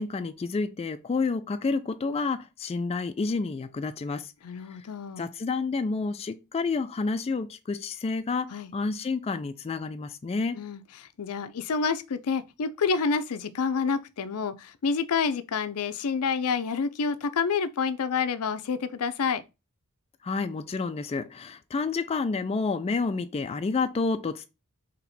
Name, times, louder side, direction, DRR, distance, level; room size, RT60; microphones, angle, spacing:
voice 1, 0.0-4.3 4.7-4.8 5.2-10.6 20.2-24.5, left 4 dB, 25° left, 0.3 m, -29 dB
voice 2, 4.4-5.3 8.5-8.7 10.5-19.4, left 5 dB, 80° left, 0.5 m, -28 dB
4.3 x 3.0 x 4.1 m
head